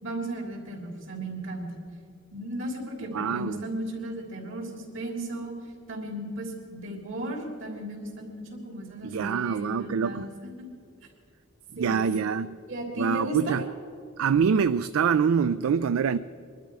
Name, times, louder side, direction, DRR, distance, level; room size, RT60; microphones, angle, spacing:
voice 1, 0.0-1.7 2.3-5.6 5.9-10.3 10.6-10.7 11.7-12.0 12.7-13.6, right 1 dB, 65° right, 3.3 m, -35 dB
voice 2, 3.1-3.6 9.0-10.3 11.7-12.6 13.0-13.6 14.2-16.2, right 6 dB, 80° right, 0.4 m, -25 dB
22.5 x 12.0 x 4.8 m
head